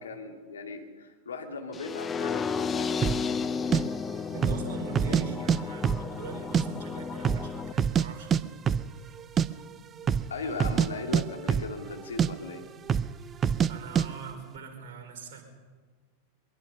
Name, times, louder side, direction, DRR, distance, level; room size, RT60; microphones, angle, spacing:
voice 1, 0.0-3.1 3.5-3.8 5.1-5.2 10.3-12.6, left 3 dB, 70° left, 3 dB, 2.6 m, -38 dB
sound 1, 1.7-7.7, left 6 dB, 20° left, 0.8 m, -33 dB
sound 2, 3.0-3.2 3.7-3.8 4.3-4.7 4.9-5.6 5.8-6.6 6.9-7.0 7.2-8.1 8.3-8.4 8.7-8.9 9.2-9.5 10.0-10.3 10.6-11.9 12.2-12.3 12.9-13.1 13.4-13.7 14.0-14.1, right 8 dB, 25° right, 0.6 m, -25 dB
voice 2, 4.3-8.5 13.7-15.4, right 6 dB, 50° right, 3 dB, 4.8 m, -41 dB
22.5 x 22.0 x 5.6 m, 1.5 s
figure-of-eight pair, 90°, 0 cm